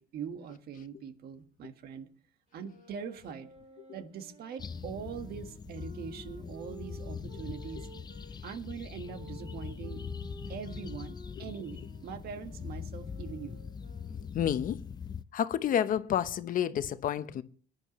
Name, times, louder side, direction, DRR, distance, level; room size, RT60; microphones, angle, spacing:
voice 1, 0.0-2.1 2.5-3.5 3.9-7.9 8.4-10.1 10.5-13.6, right 7 dB, 65° right, 1.6 m, -42 dB
sound 1, 2.5-8.3 9.0-14.5, right 2 dB, 40° right, 4.5 m, -53 dB
sound 2, 4.6-15.2, left 6 dB, 25° left, 0.5 m, -42 dB
voice 2, 14.3-14.8 15.3-17.4, left 10 dB, 55° left, 0.8 m, -29 dB
20.5 x 10.5 x 3.1 m
cardioid pair, 110°, 17 cm